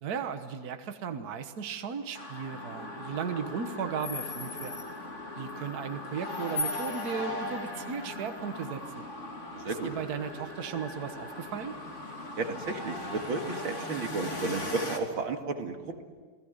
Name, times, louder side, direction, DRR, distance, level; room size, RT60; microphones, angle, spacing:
voice 1, 0.0-4.8 5.4-9.1 9.7-11.8, right 6 dB, 55° right, 7 dB, 1.7 m, -36 dB
sound 1, 2.2-15.0, left 2 dB, 35° left, 3.2 m, -38 dB
voice 2, 9.5-9.9 12.4-16.0, right 3 dB, 90° right, 4 dB, 3.0 m, -33 dB
29.0 x 20.0 x 8.1 m, 1.5 s
omnidirectional pair, 2.1 m